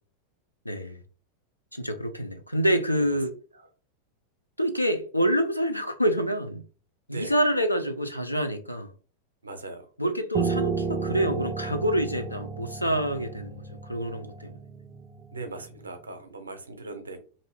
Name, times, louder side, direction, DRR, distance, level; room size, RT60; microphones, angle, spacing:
voice 1, 0.6-1.0 1.7-3.3 4.6-6.6 7.1-8.9 10.0-14.6, equal, 90° left, 0.5 m, -27 dB
voice 2, 9.4-9.9 15.3-17.2, right 2 dB, 75° right, 0.6 m, -39 dB
Piano, 10.3-15.6, right 4 dB, 25° right, 0.3 m, -33 dB
2.6 x 2.5 x 3.3 m
figure-of-eight pair, 90°, 0 cm